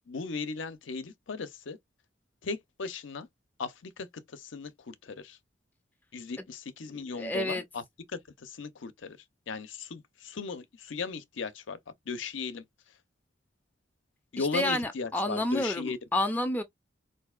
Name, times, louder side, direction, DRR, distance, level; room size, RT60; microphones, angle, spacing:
voice 1, 0.1-1.8 2.4-3.3 3.6-5.4 6.1-7.8 8.1-9.2 9.5-11.8 12.1-12.6 14.3-16.0, left 4 dB, 75° left, 0.6 m, -37 dB
voice 2, 7.2-7.6 14.4-16.6, left 1 dB, 10° left, 0.4 m, -29 dB
4.2 x 2.6 x 2.3 m
head